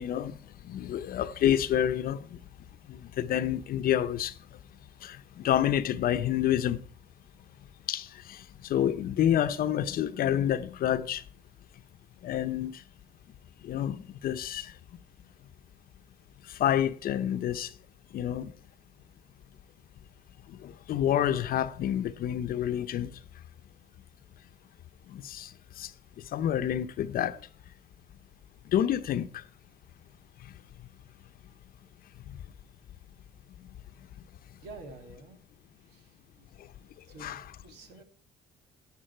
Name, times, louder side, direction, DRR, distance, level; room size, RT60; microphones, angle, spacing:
voice 1, 0.0-2.4 2.9-4.6 5.0-6.8 7.9-11.2 12.2-12.8 13.6-15.0 16.4-17.7 18.1-18.5 20.5-23.1 25.1-25.9 26.2-27.4 28.6-29.4 30.4-30.5 32.3-32.4 33.6-33.7 36.6-36.7 37.2-37.4, left 10 dB, 60° left, 0.8 m, -29 dB
voice 2, 34.6-35.4 35.8-36.5 37.0-38.0, right 3 dB, 80° right, 2.8 m, -49 dB
11.5 x 11.0 x 4.5 m
cardioid pair, 110°, 17 cm